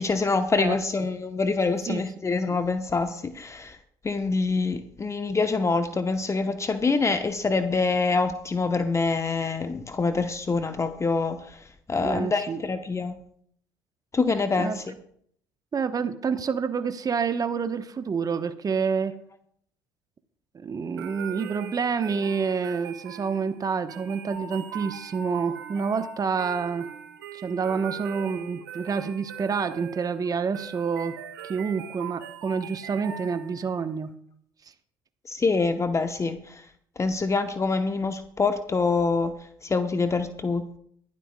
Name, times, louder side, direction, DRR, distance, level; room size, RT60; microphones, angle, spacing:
voice 1, 0.0-3.8 4.0-11.6 11.9-13.1 14.1-14.9 35.3-36.6 37.0-39.3 39.6-40.8, left 4 dB, 25° left, 8 dB, 0.9 m, -25 dB
voice 2, 12.0-12.6 14.6-14.8 15.7-19.1 20.5-26.9 27.3-31.2 31.4-34.1, right 5 dB, 35° right, 9 dB, 1.0 m, -28 dB
sound 1, 21.0-33.8, right 8 dB, 85° right, 1.6 m, -41 dB
22.0 x 11.5 x 2.2 m, 0.65 s
hypercardioid pair, 55°, 11 cm